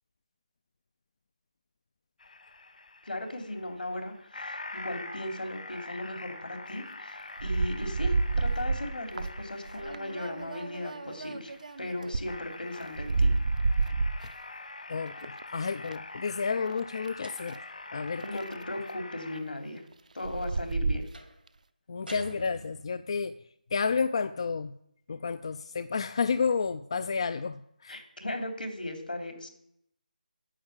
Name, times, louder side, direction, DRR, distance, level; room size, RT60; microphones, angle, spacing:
sound 1, 2.2-19.4, left 2 dB, 60° left, 1.7 m, -45 dB
voice 1, 3.0-13.3 18.2-19.8 20.1-21.1 27.9-29.5, left 1 dB, 80° left, 5 dB, 3.2 m, -37 dB
sound 2, 7.4-12.4 12.8-14.3 15.1-15.9 16.6-17.1 17.5-17.6 18.2-18.6 19.9-20.0 20.2-21.1, right 3 dB, 55° right, 0.7 m, -30 dB
voice 2, 14.9-17.6 17.9-18.2 21.9-23.4 23.7-24.7 25.1-28.0, left 5 dB, 35° left, 12 dB, 0.4 m, -31 dB
sound 3, 17.2-17.8 21.1-21.4 22.1-23.1, right 1 dB, 85° right, 2.3 m, -46 dB
9.9 x 7.8 x 7.2 m, 0.75 s
figure-of-eight pair, 165°, 5 cm